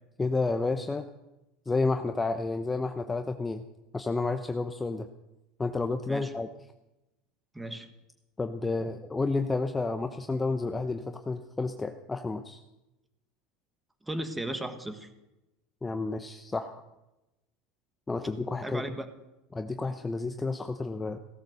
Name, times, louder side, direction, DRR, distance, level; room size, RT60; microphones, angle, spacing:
voice 1, 0.2-1.1 1.7-3.6 3.9-5.1 5.6-6.5 8.4-12.6 15.8-16.8 18.1-18.8 19.5-21.2, left 3 dB, 15° left, 7 dB, 0.8 m, -30 dB
voice 2, 7.5-7.9 14.1-15.1 18.6-19.1, right 1 dB, 5° right, 8 dB, 1.6 m, -35 dB
16.5 x 13.0 x 6.6 m, 0.97 s
supercardioid pair, 130°, 0 cm